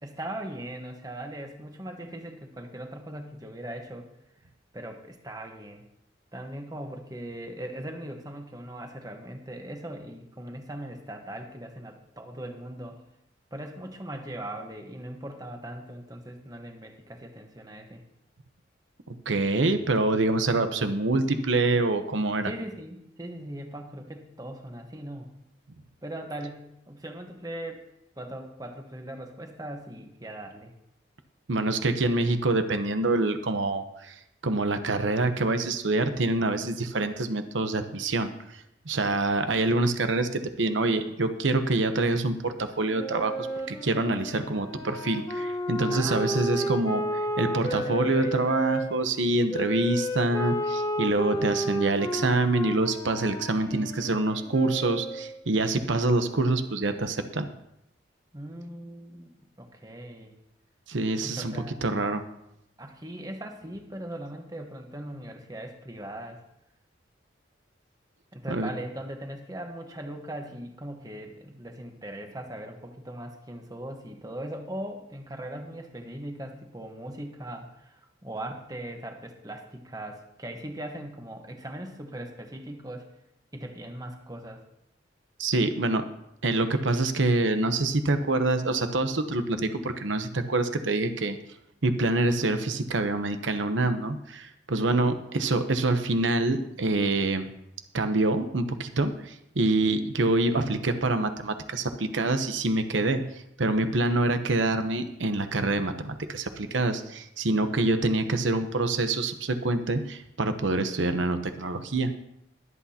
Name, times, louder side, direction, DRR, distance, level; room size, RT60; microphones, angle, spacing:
voice 1, 0.0-4.1 4.7-5.9 6.3-13.0 13.5-18.0 22.4-25.3 26.0-27.9 28.2-30.7 45.9-47.2 47.7-48.6 58.3-60.4 61.2-62.1 62.8-66.4 68.3-83.1 83.5-84.6, right 1 dB, 20° right, 3 dB, 1.2 m, -39 dB
voice 2, 19.1-22.5 31.5-47.0 47.4-57.5 60.9-61.5 61.8-62.2 68.5-68.7 85.4-86.0 86.4-91.4 91.8-97.5 97.9-112.1, right 2 dB, 80° right, 8 dB, 0.9 m, -26 dB
Wind instrument woodwind instrument, 42.9-48.9 49.5-55.4, equal, 20° left, 2.0 m, -32 dB
22.0 x 8.3 x 2.9 m, 0.80 s
head